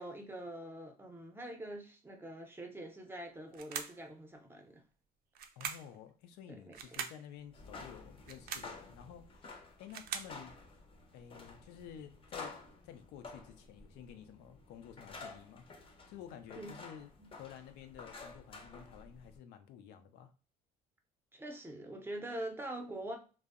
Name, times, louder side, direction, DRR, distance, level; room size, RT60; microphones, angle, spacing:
voice 1, 0.0-4.8 6.7-6.8 16.6-16.7 17.2-17.3 21.3-23.2, right 1 dB, 15° right, 0.5 m, -44 dB
sound 1, 3.5-4.1 5.4-6.0 6.7-7.2 8.2-8.8 9.6-10.4, right 7 dB, 60° right, 0.4 m, -42 dB
voice 2, 5.6-10.5 11.1-12.6 12.8-15.7 16.1-17.1 17.4-20.3, left 9 dB, 90° left, 0.4 m, -52 dB
sound 2, 7.5-19.4, left 3 dB, 30° left, 0.6 m, -51 dB
2.6 x 2.0 x 2.4 m
cardioid pair, 110°, 17 cm